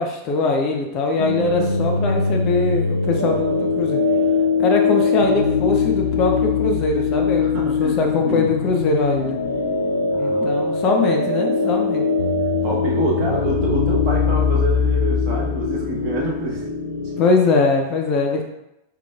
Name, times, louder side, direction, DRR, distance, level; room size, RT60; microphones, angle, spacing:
voice 1, 0.0-4.0 4.6-9.4 10.1-12.0 17.2-18.4, left 3 dB, 35° left, 2 dB, 0.6 m, -21 dB
sound 1, 1.2-17.2, left 5 dB, 85° left, 0.6 m, -21 dB
voice 2, 7.4-8.8 10.1-10.5 12.6-16.6, right 2 dB, 40° right, -2 dB, 1.0 m, -27 dB
5.1 x 3.1 x 2.4 m, 0.87 s
figure-of-eight pair, 90°, 0 cm